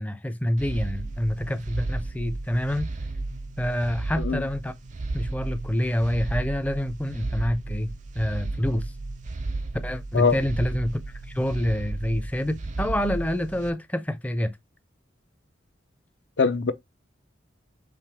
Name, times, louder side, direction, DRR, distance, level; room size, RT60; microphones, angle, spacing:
voice 1, 0.0-2.9 3.6-4.7 5.1-8.9 9.8-11.0 11.3-14.5, left 1 dB, 10° left, 0.5 m, -27 dB
sound 1, 0.6-13.7, right 2 dB, 40° right, 0.5 m, -33 dB
voice 2, 16.4-16.7, left 5 dB, 70° left, 0.6 m, -21 dB
4.9 x 3.1 x 3.4 m
head